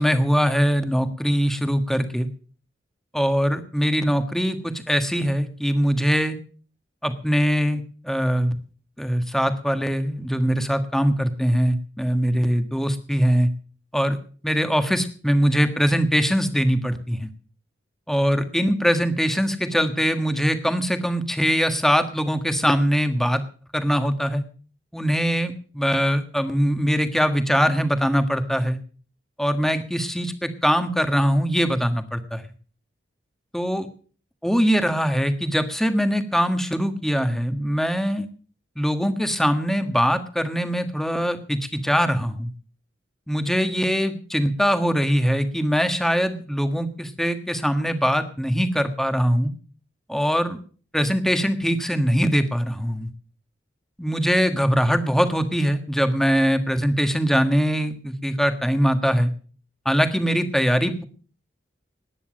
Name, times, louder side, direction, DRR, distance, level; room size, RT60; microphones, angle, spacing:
voice 1, 0.0-2.3 3.1-6.4 7.0-8.6 9.0-13.5 13.9-14.2 14.4-17.3 18.1-23.4 23.7-24.4 24.9-28.8 29.4-32.4 33.5-33.9 34.4-38.2 38.8-42.5 43.3-49.5 50.1-50.6 50.9-53.1 54.0-59.3 59.8-61.0, equal, ahead, 8 dB, 1.5 m, -22 dB
19.0 x 9.8 x 6.3 m, 0.42 s
head